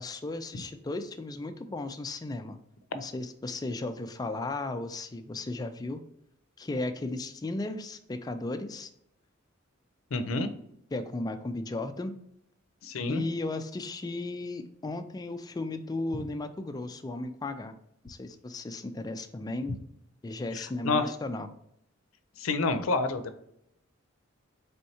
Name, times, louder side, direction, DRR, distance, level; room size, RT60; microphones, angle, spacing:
voice 1, 0.0-2.6 2.9-6.0 6.6-8.9 10.9-12.1 13.1-17.7 18.0-19.8 20.2-21.5, left 2 dB, 20° left, 8 dB, 0.3 m, -35 dB
voice 2, 10.1-10.5 12.8-13.2 20.5-21.1 22.4-23.4, left 3 dB, 85° left, 10 dB, 0.5 m, -28 dB
4.3 x 3.5 x 2.8 m, 0.75 s
head